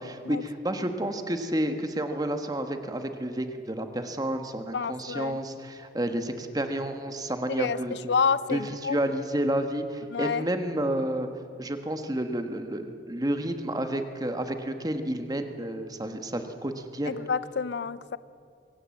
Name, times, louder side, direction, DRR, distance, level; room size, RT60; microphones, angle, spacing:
voice 1, 0.0-8.1 8.5-11.3 11.6-17.1, right 1 dB, 20° right, 7 dB, 1.4 m, -30 dB
voice 2, 4.7-5.4 7.6-9.0 10.1-10.4 17.1-18.2, left 5 dB, 70° left, 16 dB, 0.5 m, -29 dB
23.5 x 16.5 x 7.7 m, 2.3 s
head